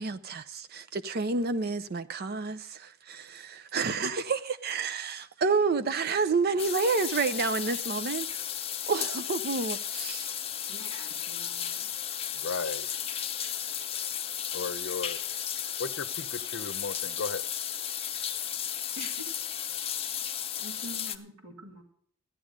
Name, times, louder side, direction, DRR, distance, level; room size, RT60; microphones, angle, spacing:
voice 1, 0.0-8.5 8.9-10.3, right 4 dB, 50° right, 0.6 m, -29 dB
sound 1, 6.6-21.2, left 9 dB, 30° left, 0.8 m, -34 dB
voice 2, 10.7-11.9 18.9-19.3 20.6-21.8, right 1 dB, 75° right, 2.1 m, -46 dB
voice 3, 12.3-12.9 14.5-15.2 15.8-17.4, left 4 dB, 55° left, 0.8 m, -35 dB
15.0 x 10.0 x 5.2 m
head